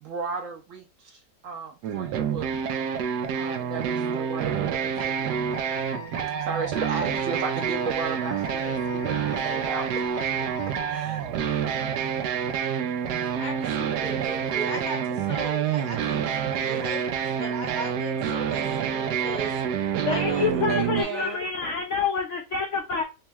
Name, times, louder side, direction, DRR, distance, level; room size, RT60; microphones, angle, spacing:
voice 1, 0.0-2.9 3.3-5.4 6.4-9.9 10.1-10.2 10.9-11.3 20.7-21.4, right 5 dB, 60° right, 2 dB, 1.0 m, -35 dB
sound 1, 1.8-21.0, right 8 dB, 85° right, 1.2 m, -28 dB
Wind instrument woodwind instrument, 5.0-11.1, left 12 dB, 90° left, 1.4 m, -41 dB
voice 2, 13.2-19.5 20.1-20.5, equal, 35° left, 0 dB, 0.8 m, -37 dB
voice 3, 20.0-23.0, left 5 dB, 65° left, 3 dB, 0.7 m, -27 dB
4.5 x 3.0 x 2.2 m, 0.28 s
omnidirectional pair, 1.8 m